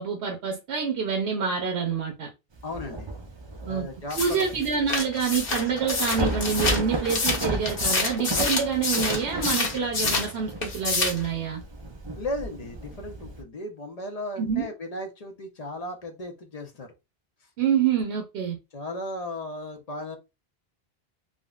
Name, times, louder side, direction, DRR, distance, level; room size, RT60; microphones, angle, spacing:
voice 1, 0.0-2.3 3.7-3.9 4.2-11.6 14.4-14.7 17.6-18.6, right 6 dB, 80° right, 0.9 m, -27 dB
Thunder / Rain, 2.5-13.4, right 2 dB, 35° right, 0.4 m, -34 dB
voice 2, 2.6-3.1 3.7-4.4 12.2-16.9 18.7-20.2, left 1 dB, 45° left, 0.6 m, -35 dB
sound 1, 4.1-10.3 10.6-11.3, left 3 dB, 60° left, 1.0 m, -27 dB
3.6 x 2.1 x 2.3 m
omnidirectional pair, 1.1 m